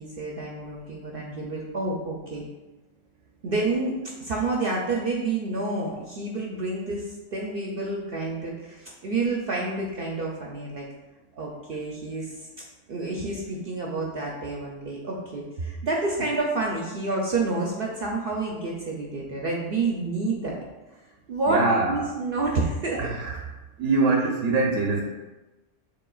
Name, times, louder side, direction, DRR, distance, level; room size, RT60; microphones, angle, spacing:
voice 1, 0.0-2.5 3.4-3.9 4.2-10.9 11.4-12.5 12.9-20.6 21.3-21.6 21.9-23.0, right 3 dB, 55° right, -2 dB, 0.7 m, -29 dB
voice 2, 21.5-22.1 23.0-23.4 23.8-25.0, right 3 dB, 85° right, 0 dB, 0.9 m, -23 dB
6.8 x 3.2 x 2.3 m, 1.1 s
omnidirectional pair, 1.3 m